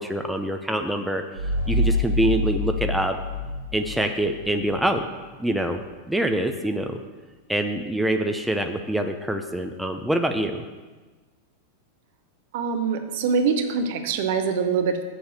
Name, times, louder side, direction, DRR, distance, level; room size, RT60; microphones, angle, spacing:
voice 1, 0.0-3.2 3.7-5.1 5.4-5.8 6.1-7.0 7.5-10.6, right 1 dB, 5° right, 5 dB, 0.6 m, -25 dB
sound 1, 1.4-4.7, left 2 dB, 85° right, 2.1 m, -26 dB
voice 2, 12.5-15.0, right 5 dB, 55° right, 7 dB, 0.9 m, -24 dB
7.1 x 6.5 x 6.5 m, 1.3 s
figure-of-eight pair, 90°, 0 cm